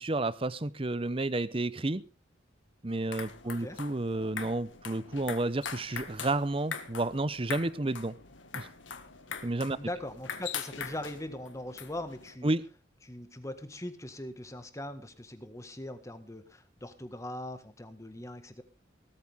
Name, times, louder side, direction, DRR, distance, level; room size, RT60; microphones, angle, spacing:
voice 1, 0.0-2.0 2.8-8.1 8.5-8.7 9.4-9.8 12.4-12.7, right 2 dB, 30° right, 0.7 m, -31 dB
sound 1, 2.9-12.3, left 6 dB, 75° left, 1.8 m, -42 dB
voice 2, 3.4-3.8 9.8-12.5 13.0-18.6, left 1 dB, 15° left, 1.6 m, -41 dB
18.0 x 13.5 x 3.6 m
head